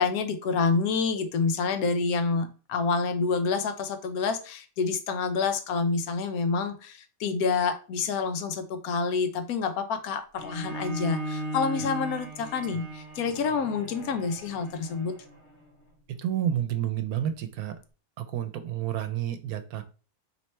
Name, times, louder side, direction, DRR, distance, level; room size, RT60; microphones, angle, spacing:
voice 1, 0.0-15.1, left 5 dB, 75° left, 9 dB, 1.1 m, -28 dB
Bowed string instrument, 10.4-15.6, right 1 dB, 50° left, 1.5 m, -37 dB
voice 2, 16.2-17.7 18.2-19.8, right 10 dB, 80° right, 9 dB, 1.1 m, -30 dB
3.2 x 3.1 x 4.2 m, 0.35 s
omnidirectional pair, 1.6 m